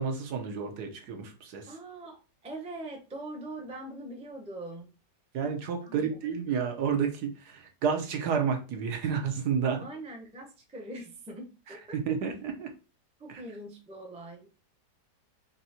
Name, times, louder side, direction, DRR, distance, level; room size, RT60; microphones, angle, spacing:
voice 1, 0.0-1.7 5.3-9.8 11.9-12.7 13.3-13.4, right 6 dB, 70° right, 4 dB, 1.4 m, -30 dB
voice 2, 1.7-4.9 5.8-6.2 9.8-12.2 13.2-14.7, right 1 dB, 5° right, 1 dB, 0.5 m, -42 dB
4.5 x 2.7 x 4.2 m, 0.33 s
omnidirectional pair, 1.8 m